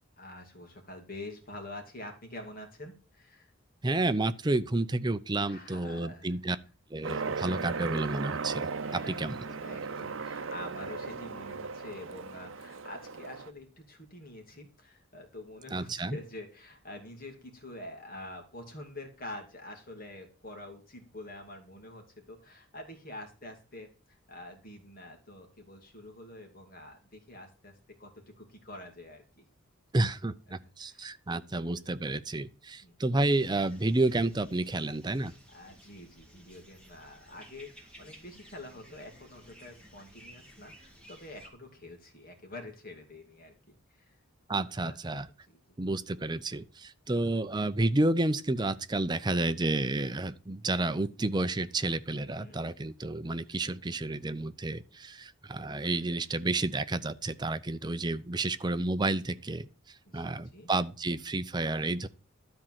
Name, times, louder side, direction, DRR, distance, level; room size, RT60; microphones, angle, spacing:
voice 1, 0.2-3.5 5.5-6.4 8.8-27.7 28.0-29.4 30.5-31.1 32.8-33.0 35.5-44.2 44.8-45.2 45.5-45.6 52.1-52.6 60.1-60.7, left 1 dB, 45° left, 2.5 m, -47 dB
voice 2, 3.8-6.6 6.9-9.4 15.7-16.2 29.9-35.3 44.5-45.3 45.8-62.1, right 2 dB, 20° right, 0.5 m, -30 dB
Aircraft, 7.0-13.5, right 4 dB, 65° right, 0.7 m, -37 dB
sound 1, 33.2-41.5, equal, 5° left, 2.2 m, -55 dB
12.5 x 4.4 x 7.6 m
head